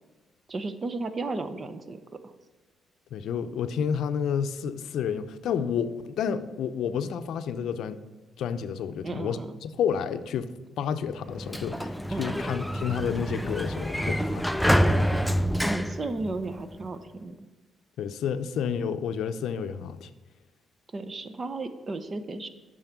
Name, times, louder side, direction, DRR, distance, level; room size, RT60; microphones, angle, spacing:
voice 1, 0.5-2.3 9.0-9.5 12.1-12.5 14.0-14.4 15.6-17.5 20.9-22.5, right 3 dB, 35° right, 11 dB, 0.8 m, -34 dB
voice 2, 3.1-8.0 8.4-14.4 14.7-15.3 18.0-20.1, left 7 dB, 75° left, 10 dB, 0.5 m, -30 dB
Sliding door, 11.2-16.9, equal, ahead, 0.4 m, -27 dB
8.7 x 6.4 x 6.0 m, 1.2 s
cardioid pair, 90°, 0 cm